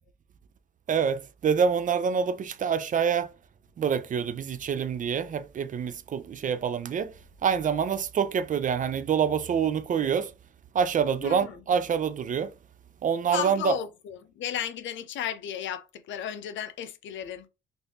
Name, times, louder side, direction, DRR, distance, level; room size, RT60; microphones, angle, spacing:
voice 1, 0.9-3.3 3.8-7.1 7.4-10.3 10.7-12.5 13.0-13.8, right 7 dB, 40° right, 0.4 m, -26 dB
voice 2, 11.2-11.6 13.3-17.5, left 9 dB, 70° left, 0.5 m, -34 dB
3.3 x 2.6 x 2.8 m
cardioid pair, 90°, 20 cm